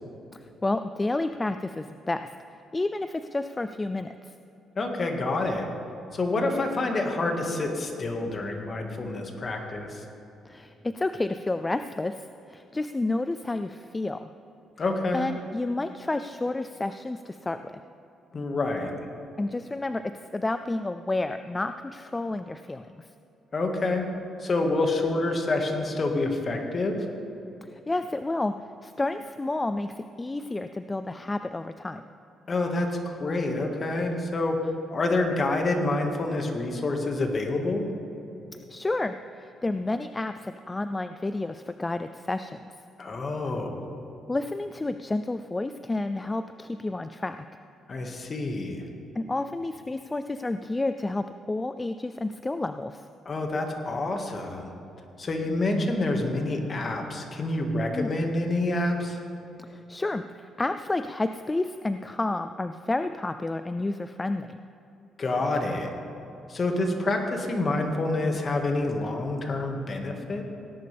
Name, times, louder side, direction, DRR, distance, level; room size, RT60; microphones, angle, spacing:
voice 1, 0.3-2.3 2.7-4.3 10.4-14.3 15.1-17.8 19.4-23.1 27.6-28.6 28.8-32.0 38.5-42.7 44.3-47.4 49.2-53.1 57.9-58.3 59.6-64.6, left 2 dB, 20° left, 10 dB, 0.4 m, -30 dB
voice 2, 4.8-5.7 6.1-10.0 14.8-15.2 18.3-18.9 23.5-24.1 24.4-27.1 32.5-32.9 33.2-37.9 43.0-43.8 47.9-48.9 53.3-54.7 55.2-59.2 65.2-65.9 66.5-70.4, left 2 dB, 40° left, 3 dB, 1.8 m, -27 dB
18.5 x 11.0 x 3.5 m, 3.0 s
cardioid pair, 90°, 0 cm